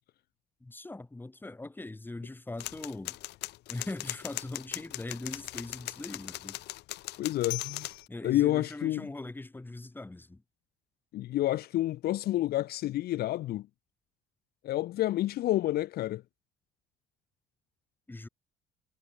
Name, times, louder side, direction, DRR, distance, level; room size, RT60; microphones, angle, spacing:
voice 1, 0.6-3.2 3.7-6.6 8.1-10.4 18.1-18.3, left 2 dB, 10° left, 2.8 m, -41 dB
sound 1, 2.6-8.0, left 17 dB, 85° left, 6.4 m, -39 dB
voice 2, 7.2-7.9 8.2-9.1 11.1-13.7 14.6-16.2, left 15 dB, 65° left, 0.9 m, -29 dB
cardioid pair, 110°, 17 cm